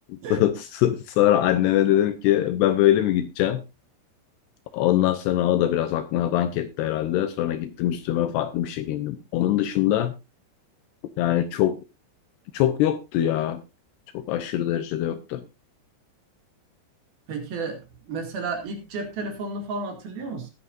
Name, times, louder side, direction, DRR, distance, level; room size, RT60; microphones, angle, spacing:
voice 1, 0.3-3.6 4.7-10.1 11.2-11.8 12.5-13.6 14.1-15.4, left 12 dB, 75° left, 11 dB, 2.6 m, -23 dB
voice 2, 17.3-17.8 18.0-20.5, right 3 dB, 60° right, 4 dB, 3.9 m, -32 dB
19.0 x 9.6 x 2.5 m, 0.25 s
omnidirectional pair, 5.3 m